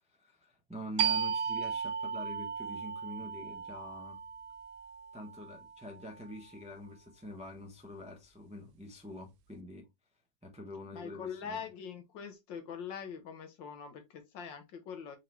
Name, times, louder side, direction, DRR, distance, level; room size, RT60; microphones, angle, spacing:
voice 1, 0.1-4.2 5.1-9.9 10.4-11.6, equal, 5° right, 0.7 m, -46 dB
sound 1, 1.0-6.3, right 7 dB, 70° right, 1.0 m, -36 dB
voice 2, 10.9-15.2, left 7 dB, 70° left, 1.7 m, -43 dB
4.6 x 3.7 x 3.0 m
omnidirectional pair, 2.1 m